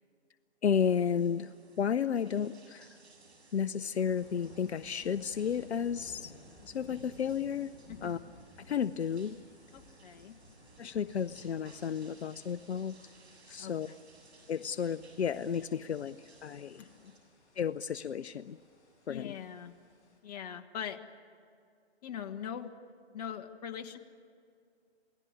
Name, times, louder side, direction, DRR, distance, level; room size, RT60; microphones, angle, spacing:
voice 1, 0.6-2.9 3.5-6.3 6.7-7.7 8.0-8.2 8.7-9.4 10.8-13.0 13.5-13.9 14.5-16.2 16.4-16.8 17.6-18.6 19.1-19.4, left 7 dB, 70° left, 13 dB, 0.7 m, -32 dB
sound 1, 0.7-17.2, right 3 dB, 70° right, 7.8 m, -61 dB
sound 2, 4.0-20.2, left 1 dB, 10° left, 6.4 m, -58 dB
voice 2, 9.7-10.4 13.6-14.0 16.8-17.1 19.1-19.7 20.2-21.0 22.0-22.7 23.1-24.0, left 8 dB, 35° left, 6 dB, 1.6 m, -42 dB
28.5 x 18.0 x 9.8 m, 2.3 s
hypercardioid pair, 140°, 34 cm